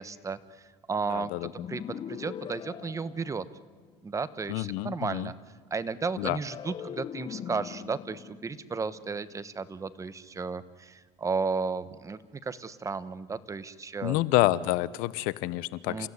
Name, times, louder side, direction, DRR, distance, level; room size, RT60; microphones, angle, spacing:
voice 1, 0.0-3.4 4.0-5.3 5.7-14.2 15.9-16.1, right 4 dB, 25° right, 15 dB, 1.2 m, -34 dB
voice 2, 1.1-1.5 4.5-5.3 6.2-6.4 14.0-16.1, left 17 dB, 80° left, 18 dB, 0.9 m, -28 dB
sound 1, 1.6-3.9 6.4-9.7, left 9 dB, 35° left, 0.7 m, -42 dB
28.5 x 16.0 x 9.7 m, 1.5 s
cardioid pair, 110°, 14 cm